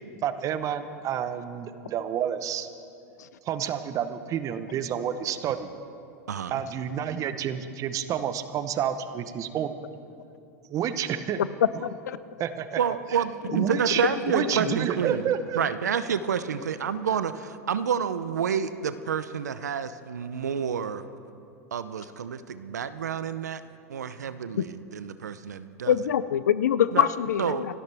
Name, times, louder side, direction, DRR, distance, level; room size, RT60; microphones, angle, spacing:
voice 1, 0.2-2.7 3.5-5.7 6.5-9.7 10.7-11.4 12.4-12.8 13.5-14.0 14.3-15.6, right 9 dB, 40° right, 11 dB, 1.0 m, -29 dB
voice 2, 6.3-6.6 12.8-21.0 21.7-23.6 23.9-26.0 26.9-27.1 27.4-27.7, right 7 dB, 85° right, 13 dB, 0.7 m, -29 dB
voice 3, 25.9-27.6, left 9 dB, 80° left, 16 dB, 0.5 m, -24 dB
27.5 x 13.0 x 3.5 m, 2.6 s
hypercardioid pair, 100°, 9 cm